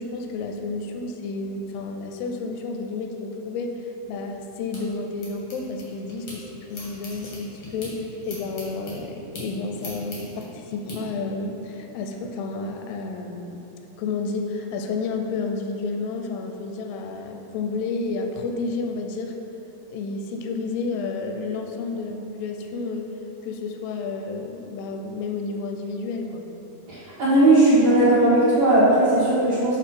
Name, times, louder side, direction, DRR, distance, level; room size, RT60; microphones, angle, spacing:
voice 1, 0.0-3.8 4.1-13.6 14.0-19.4 19.9-23.1 23.4-26.5, left 3 dB, 85° left, 4 dB, 2.5 m, -31 dB
sound 1, 4.0-6.4 6.7-11.0, equal, 70° left, 1.1 m, -40 dB
voice 2, 26.9-29.8, right 1 dB, 60° right, -11 dB, 1.9 m, -17 dB
7.7 x 2.9 x 5.9 m, 3.0 s
omnidirectional pair, 4.5 m